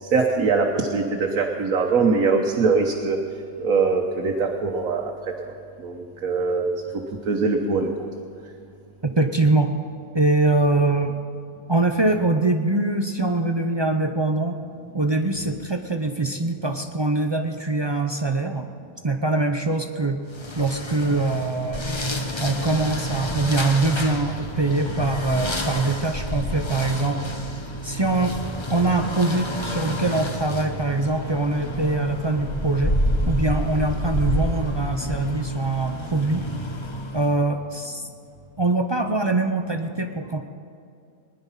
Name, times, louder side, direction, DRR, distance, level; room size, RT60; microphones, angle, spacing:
voice 1, 0.0-3.2 3.6-5.1 5.8-6.7 7.2-7.9, right 4 dB, 75° right, 0 dB, 1.4 m, -22 dB
voice 2, 9.0-9.7 10.1-11.2 11.7-14.6 14.9-18.7 19.0-20.2 20.6-21.9 22.4-27.2 27.8-28.4 28.7-33.0 33.3-36.4 37.1-38.1 38.6-40.4, right 2 dB, 45° right, 5 dB, 0.3 m, -23 dB
sound 1, 20.3-37.4, equal, 25° left, 0.9 m, -29 dB
20.5 x 10.5 x 5.7 m, 2.4 s
omnidirectional pair, 1.5 m